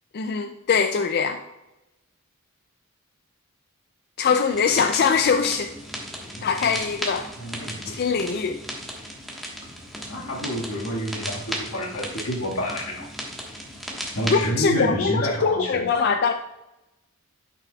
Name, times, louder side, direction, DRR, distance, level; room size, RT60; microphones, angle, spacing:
voice 1, 0.1-1.4 4.2-5.7 6.4-7.3 7.9-8.6 14.3-16.3, left 5 dB, 50° left, 6 dB, 0.4 m, -22 dB
sound 1, 4.5-14.5, equal, ahead, 1.3 m, -36 dB
voice 2, 5.9-6.9 7.4-8.0 10.0-13.0 14.1-15.8, equal, 85° left, -2 dB, 1.7 m, -29 dB
10.5 x 5.8 x 2.3 m, 0.96 s
head